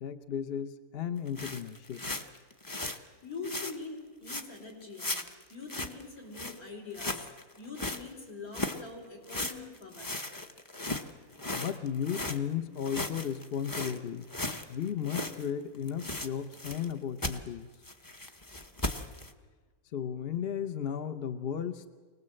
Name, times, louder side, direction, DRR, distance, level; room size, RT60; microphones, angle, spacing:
voice 1, 0.0-2.0 11.5-14.3 14.7-17.7 19.9-21.9, left 8 dB, 45° left, 10 dB, 0.9 m, -35 dB
sound 1, 1.3-3.0 3.4-3.8 4.3-4.6 5.0-6.0 6.3-6.6 6.9-8.0 8.5-8.8 9.3-12.4 12.8-15.5 15.7-16.9 17.2-17.4 17.8-19.3, left 2 dB, 15° left, 0.8 m, -36 dB
voice 2, 3.2-5.2 5.5-7.3 7.6-10.1, left 4 dB, 70° left, 0 dB, 4.7 m, -43 dB
25.0 x 19.5 x 7.7 m, 1.4 s
omnidirectional pair, 1.6 m